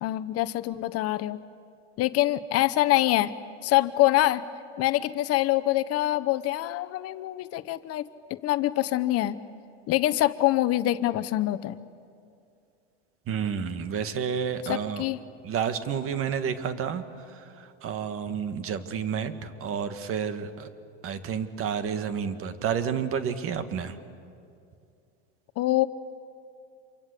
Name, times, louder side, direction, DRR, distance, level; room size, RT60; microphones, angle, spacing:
voice 1, 0.0-1.4 2.0-3.3 3.6-4.4 4.8-9.4 9.9-11.8 14.7-15.2 25.6-25.9, left 15 dB, 45° left, 13 dB, 1.0 m, -25 dB
voice 2, 13.3-15.0 15.4-20.7 21.0-24.0, right 7 dB, 40° right, 10 dB, 2.0 m, -30 dB
27.5 x 24.0 x 8.4 m, 2.4 s
supercardioid pair, 110°, 33 cm